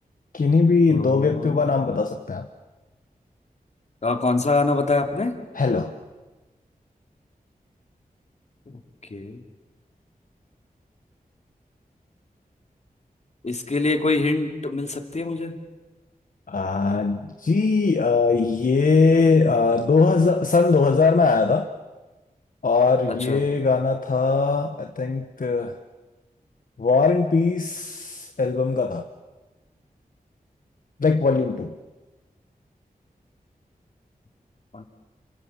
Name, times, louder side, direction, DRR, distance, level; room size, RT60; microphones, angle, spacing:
voice 1, 0.3-2.5 5.5-5.9 16.5-21.7 22.6-25.8 26.8-29.0 31.0-31.7, left 4 dB, 60° left, 6 dB, 1.3 m, -20 dB
voice 2, 0.9-1.7 4.0-5.4 8.7-8.8 9.1-9.4 13.4-15.5 23.3-23.4 34.7-34.9, left 3 dB, 45° left, 4 dB, 3.1 m, -24 dB
30.0 x 25.0 x 7.4 m, 1.2 s
wide cardioid pair, 80°, 15 cm